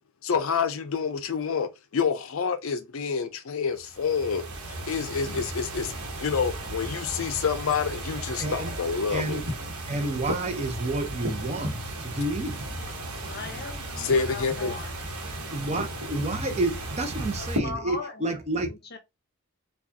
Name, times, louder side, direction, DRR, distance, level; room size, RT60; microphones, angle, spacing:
voice 1, 0.2-5.9 6.2-9.4 14.0-14.7, left 6 dB, 65° left, 0.5 m, -28 dB
sound 1, 3.8-17.6, right 1 dB, 80° right, 1.1 m, -35 dB
voice 2, 8.4-8.7 9.1-9.4 9.9-12.5 15.5-18.7, right 2 dB, 30° right, 0.6 m, -30 dB
voice 3, 13.3-15.0 15.4-15.6 17.3-19.0, left 4 dB, 45° left, 0.8 m, -39 dB
4.7 x 2.3 x 2.7 m
head